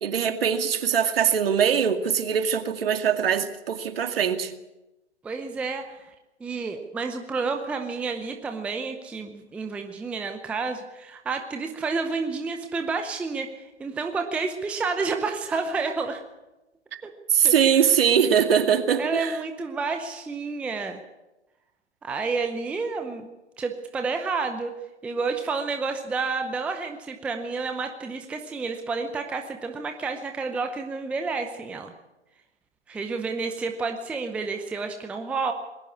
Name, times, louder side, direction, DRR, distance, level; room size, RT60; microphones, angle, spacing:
voice 1, 0.0-4.5 17.3-19.4, right 8 dB, 55° right, 2.4 m, -22 dB
voice 2, 5.2-6.0 6.4-16.2 17.0-17.1 17.4-17.9 19.0-21.0 22.0-23.3 23.6-24.8 25.0-31.9 32.9-35.5, right 4 dB, 5° right, 0.7 m, -30 dB
20.5 x 17.0 x 8.5 m
hypercardioid pair, 140°, 35 cm